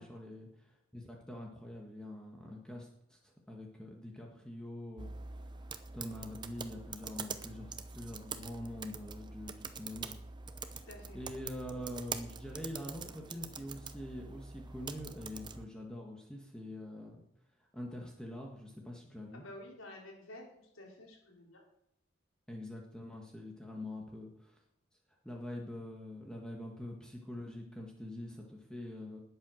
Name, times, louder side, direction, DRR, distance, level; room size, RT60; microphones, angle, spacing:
voice 1, 0.0-5.1 5.9-10.1 11.1-17.2 17.7-19.4 22.5-24.6 25.2-29.2, left 1 dB, 5° left, -1 dB, 1.7 m, -45 dB
sound 1, 5.0-15.7, right 5 dB, 20° right, 0.7 m, -45 dB
voice 2, 10.7-11.2 19.3-21.6, left 1 dB, 80° left, -1 dB, 4.0 m, -51 dB
20.0 x 7.9 x 6.5 m, 0.82 s
head